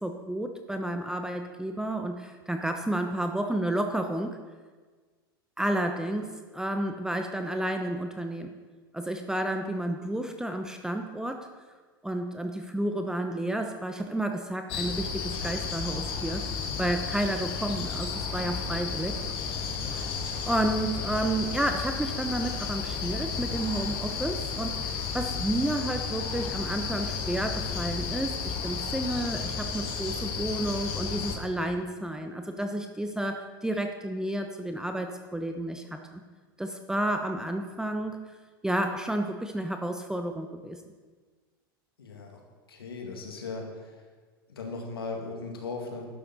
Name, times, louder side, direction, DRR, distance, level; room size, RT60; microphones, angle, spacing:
voice 1, 0.0-4.4 5.6-8.5 8.9-11.5 12.0-16.4 16.8-19.2 20.5-36.2 36.6-38.2 38.6-40.8, right 1 dB, 5° right, 5 dB, 0.9 m, -31 dB
sound 1, 14.7-31.4, left 5 dB, 50° left, 1.9 m, -33 dB
voice 2, 42.0-42.4 42.7-44.0 44.5-46.1, left 3 dB, 85° left, 1 dB, 2.2 m, -37 dB
11.5 x 11.0 x 4.1 m, 1.4 s
hypercardioid pair, 95°, 12 cm